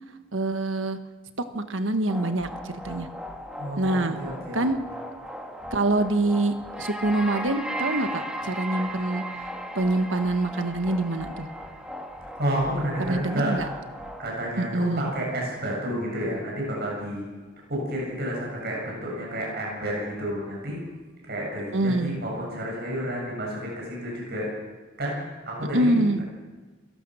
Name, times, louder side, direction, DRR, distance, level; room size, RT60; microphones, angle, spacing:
voice 1, 0.3-1.0 1.5-3.1 3.8-4.2 4.5-4.8 5.7-9.2 9.7-11.5 13.1-13.7 14.6-15.1 21.7-22.2 25.7-26.2, right 2 dB, 70° right, 9 dB, 1.4 m, -25 dB
sound 1, 2.1-14.3, right 1 dB, 5° right, 2.3 m, -36 dB
voice 2, 3.6-4.6 12.3-13.6 14.2-17.2 17.7-20.8 21.2-24.5 25.0-26.2, equal, 55° right, -3 dB, 7.7 m, -30 dB
28.5 x 17.0 x 6.4 m, 1.3 s
head